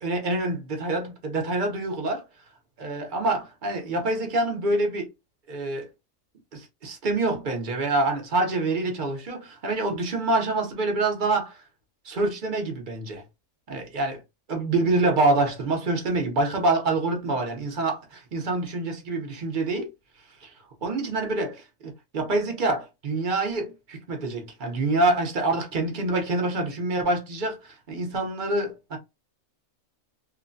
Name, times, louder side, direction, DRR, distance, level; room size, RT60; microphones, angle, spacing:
voice 1, 0.0-2.2 2.8-5.1 5.5-5.9 6.5-11.6 12.0-13.2 13.7-14.2 14.5-19.9 20.4-20.5 20.8-29.0, right 2 dB, 45° right, 0.8 m, -26 dB
3.0 x 2.1 x 2.5 m
omnidirectional pair, 1.4 m